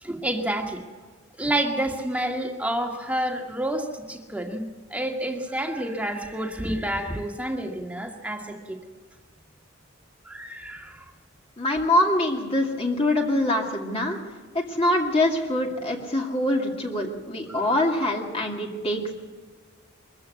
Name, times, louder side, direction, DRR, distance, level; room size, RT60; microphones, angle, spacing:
voice 1, 0.0-0.8 1.4-8.8 10.3-11.0 17.5-17.6, right 1 dB, 5° right, 2 dB, 2.0 m, -29 dB
voice 2, 11.6-14.2 14.5-19.1, left 1 dB, 30° left, 0 dB, 2.3 m, -24 dB
23.0 x 14.5 x 8.4 m, 1.5 s
head